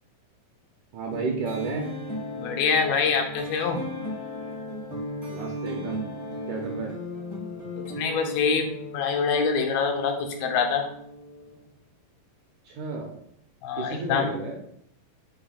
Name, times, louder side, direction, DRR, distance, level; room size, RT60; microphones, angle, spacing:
voice 1, 0.9-1.9 5.3-6.0 6.5-6.9 12.7-13.2 13.8-14.6, right 4 dB, 70° right, 0 dB, 2.0 m, -32 dB
sound 1, 1.1-11.7, left 1 dB, 25° left, 0.5 m, -36 dB
voice 2, 2.4-3.8 7.9-10.9 13.6-14.3, left 5 dB, 80° left, 4 dB, 2.7 m, -25 dB
7.2 x 3.2 x 4.8 m, 0.70 s
omnidirectional pair, 4.3 m